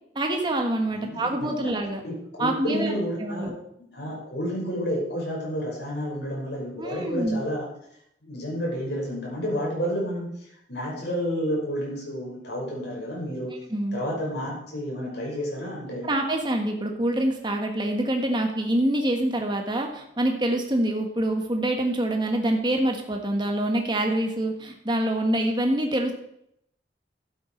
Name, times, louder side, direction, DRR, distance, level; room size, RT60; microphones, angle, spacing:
voice 1, 0.1-2.0 2.4-2.9 3.2-3.5 6.8-7.4 13.7-14.0 16.0-26.1, right 1 dB, 25° right, 2 dB, 1.6 m, -25 dB
voice 2, 0.9-1.3 2.0-3.5 3.9-13.5 13.9-16.1, equal, 75° left, -3 dB, 5.5 m, -30 dB
12.0 x 8.9 x 4.6 m, 0.75 s
head